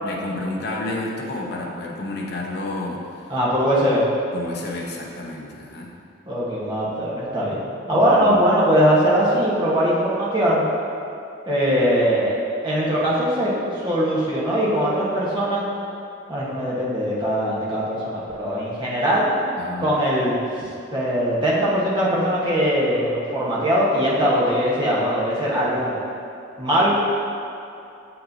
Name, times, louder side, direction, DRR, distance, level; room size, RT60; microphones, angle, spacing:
voice 1, 0.0-3.3 4.3-5.9 8.1-8.4 19.6-19.9, left 2 dB, 50° left, -2 dB, 0.8 m, -30 dB
voice 2, 3.3-4.1 6.3-7.6 7.9-10.6 11.5-12.3 12.6-15.7 16.3-19.3 19.8-20.4 20.9-25.9 26.6-26.9, equal, 20° right, -7 dB, 1.1 m, -21 dB
7.4 x 5.8 x 2.7 m, 2.6 s
head